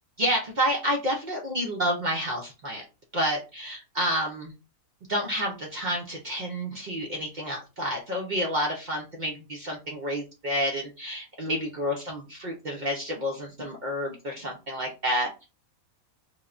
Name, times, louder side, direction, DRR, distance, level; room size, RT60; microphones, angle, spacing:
voice 1, 0.2-2.8 3.1-4.5 5.1-15.4, equal, 75° right, -1 dB, 0.4 m, -29 dB
3.0 x 2.1 x 2.4 m, 0.29 s
omnidirectional pair, 1.5 m